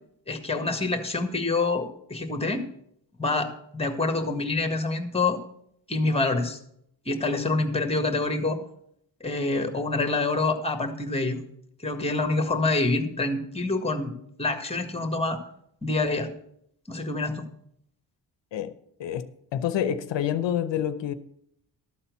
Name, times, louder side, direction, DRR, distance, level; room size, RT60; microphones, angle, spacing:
voice 1, 0.3-2.6 3.2-5.4 5.9-6.6 7.0-8.6 9.2-11.4 11.8-14.1 14.4-15.4 15.8-16.3 16.9-17.5, left 3 dB, 15° left, 1.6 m, -26 dB
voice 2, 19.0-21.1, left 10 dB, 90° left, 0.7 m, -28 dB
12.5 x 4.3 x 8.1 m
cardioid pair, 85°, 43 cm